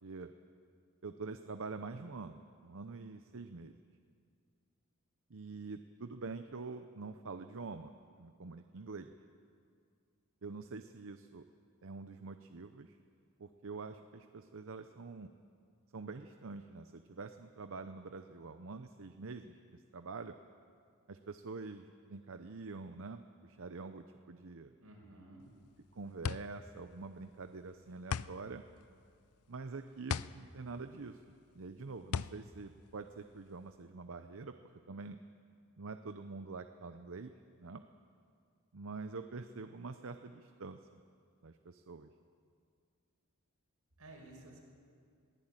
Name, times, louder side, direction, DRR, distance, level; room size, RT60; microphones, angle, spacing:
voice 1, 0.0-0.3 1.0-3.8 5.3-9.1 10.4-11.4 11.8-13.0 13.4-15.3 15.9-20.4 21.1-24.7 25.9-28.6 29.5-31.2 31.5-34.6 34.9-35.2 35.8-37.3 37.6-37.8 38.7-40.8 41.4-42.1, right 4 dB, 65° right, 8 dB, 0.7 m, -46 dB
voice 2, 24.8-25.4 44.0-44.6, right 2 dB, 85° right, 0 dB, 5.9 m, -54 dB
sound 1, 25.4-33.8, left 6 dB, 85° left, 0.5 m, -41 dB
21.5 x 16.0 x 9.0 m, 2.2 s
head